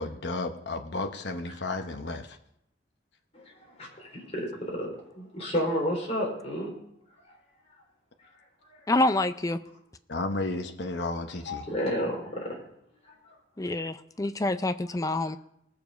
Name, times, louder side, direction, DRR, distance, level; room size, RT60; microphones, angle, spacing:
voice 1, 0.0-2.4 10.1-11.7, left 2 dB, 65° left, 5 dB, 0.9 m, -33 dB
voice 2, 3.3-6.7 7.3-7.4 8.2-8.3 8.6-8.8 11.5-12.6 13.0-13.3, equal, 35° left, -2 dB, 4.3 m, -32 dB
voice 3, 8.9-9.6 13.6-15.4, left 2 dB, 20° left, 11 dB, 0.4 m, -27 dB
20.0 x 7.0 x 5.1 m, 0.77 s
head